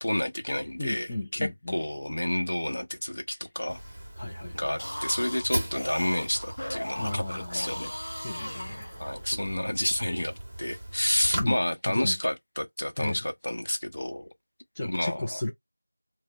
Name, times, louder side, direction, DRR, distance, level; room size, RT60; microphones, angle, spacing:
voice 1, 0.0-1.1 1.3-3.8 4.5-7.9 9.0-14.3 14.8-15.4, left 1 dB, 45° left, 0.9 m, -30 dB
voice 2, 0.8-1.8 4.2-4.7 7.0-7.8 8.2-8.9 11.3-11.6 11.9-12.2 13.0-13.2 14.7-15.5, left 2 dB, 10° left, 0.4 m, -34 dB
Fire, 3.7-11.4, right 1 dB, 5° right, 1.0 m, -38 dB
sound 1, 4.6-9.4, equal, 70° left, 1.1 m, -38 dB
4.8 x 2.1 x 3.0 m
figure-of-eight pair, 180°, 0 cm